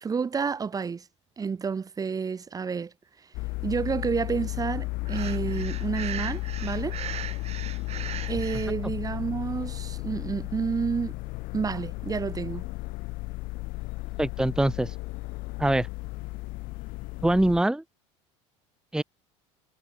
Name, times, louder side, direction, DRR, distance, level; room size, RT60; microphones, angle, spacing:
voice 1, 0.0-1.0 1.4-2.9 3.6-7.0 8.3-11.1 11.5-12.7, right 5 dB, 25° right, 1.1 m, -30 dB
sound 1, 3.3-17.6, left 23 dB, 65° left, 3.5 m, -34 dB
Breathing, 5.0-8.7, right 10 dB, 45° right, 3.6 m, -38 dB
voice 2, 14.2-14.9 15.6-15.9 17.2-17.8 18.9-19.0, right 1 dB, 5° right, 0.9 m, -23 dB
supercardioid pair, 95°, 16 cm